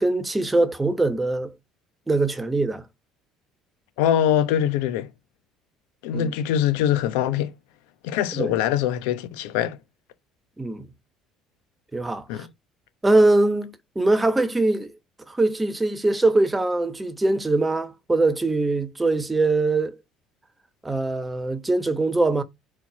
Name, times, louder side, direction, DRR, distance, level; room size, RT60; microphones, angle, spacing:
voice 1, 0.0-1.5 2.1-2.8 6.1-6.3 8.3-8.5 10.6-10.9 11.9-12.5 13.0-14.9 15.3-20.0 20.8-22.4, right 2 dB, 15° right, 1.3 m, -22 dB
voice 2, 4.0-5.1 6.0-7.5 8.0-9.8 12.3-12.5, left 10 dB, 75° left, 1.0 m, -23 dB
4.5 x 4.4 x 5.6 m
hypercardioid pair, 65°, 0 cm